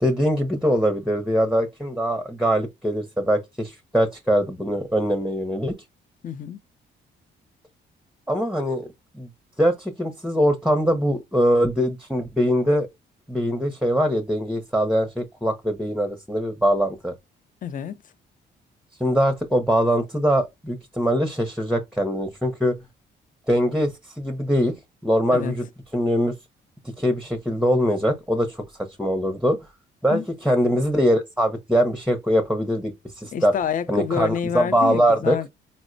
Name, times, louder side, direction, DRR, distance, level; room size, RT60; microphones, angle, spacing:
voice 1, 0.0-5.8 8.3-8.9 9.1-9.3 9.6-12.9 13.3-17.1 19.0-22.8 23.5-24.7 25.0-25.6 25.9-26.3 27.0-28.6 29.0-29.7 30.0-33.5 33.9-35.4, equal, ahead, 0.6 m, -22 dB
voice 2, 6.2-6.6 17.6-18.0 25.3-25.5 30.1-30.3 33.3-35.5, left 8 dB, 45° left, 0.5 m, -28 dB
4.2 x 2.0 x 2.5 m
cardioid pair, 90°, 20 cm